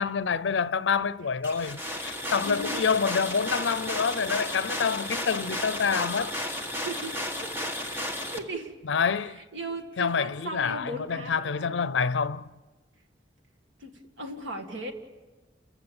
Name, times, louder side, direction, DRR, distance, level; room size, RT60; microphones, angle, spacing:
voice 1, 0.0-6.4 8.9-9.4 10.0-12.5, left 6 dB, 85° left, 0.6 m, -27 dB
sound 1, 1.4-8.4, left 1 dB, 10° right, 1.5 m, -33 dB
voice 2, 2.1-2.8 6.7-7.5 7.8-8.8 9.2-11.9 13.8-14.9, right 1 dB, 90° right, 2.0 m, -38 dB
29.5 x 15.0 x 7.1 m
head